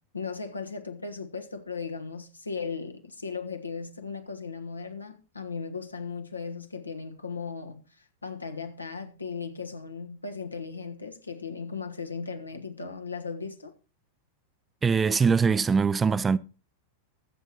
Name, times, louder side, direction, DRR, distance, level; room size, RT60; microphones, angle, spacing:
voice 1, 0.1-13.7, left 5 dB, 80° left, 1.4 m, -37 dB
voice 2, 14.8-16.4, right 5 dB, 15° right, 0.5 m, -22 dB
23.0 x 8.1 x 2.9 m
figure-of-eight pair, 90°, 0 cm